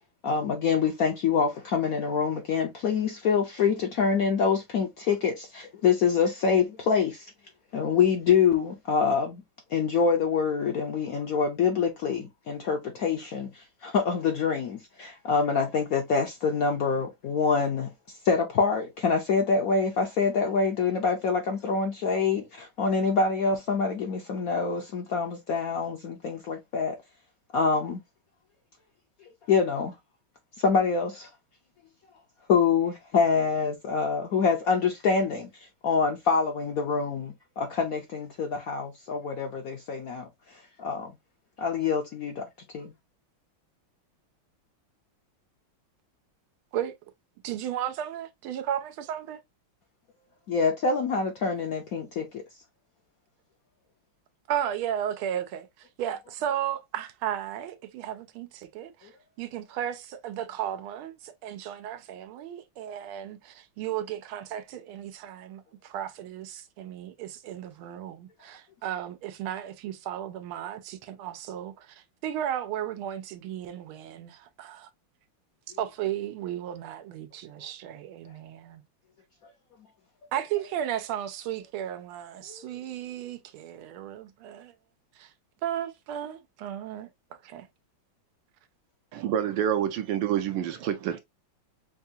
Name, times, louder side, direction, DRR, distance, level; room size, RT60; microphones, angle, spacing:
voice 1, 0.2-7.3 7.7-9.4 9.7-17.9 18.2-27.0 27.5-28.0 29.5-29.9 30.6-31.3 32.5-35.5 35.8-41.1 41.6-42.5 42.7-42.9 50.5-52.4 82.5-82.6, left 5 dB, 65° left, 0.9 m, -26 dB
voice 2, 47.4-49.4 54.5-59.1 59.4-74.9 75.8-78.8 80.3-84.7 85.2-85.3 85.6-87.1 87.4-87.7, right 10 dB, 85° right, 1.5 m, -34 dB
voice 3, 89.1-91.2, right 10 dB, 70° right, 1.2 m, -27 dB
5.3 x 2.3 x 2.7 m
omnidirectional pair, 2.2 m